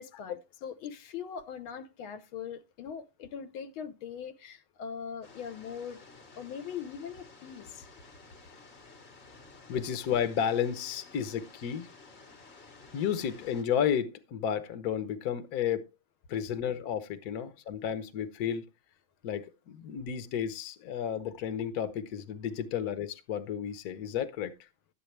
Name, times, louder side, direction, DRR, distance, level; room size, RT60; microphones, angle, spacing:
voice 1, 0.0-6.0 6.3-7.9, left 7 dB, 80° left, 1.7 m, -41 dB
sound 1, 5.2-13.6, left 3 dB, 35° left, 1.7 m, -53 dB
voice 2, 9.7-11.9 12.9-15.8 16.3-18.6 19.2-24.7, left 8 dB, 55° left, 1.4 m, -32 dB
12.5 x 8.6 x 3.3 m
omnidirectional pair, 2.2 m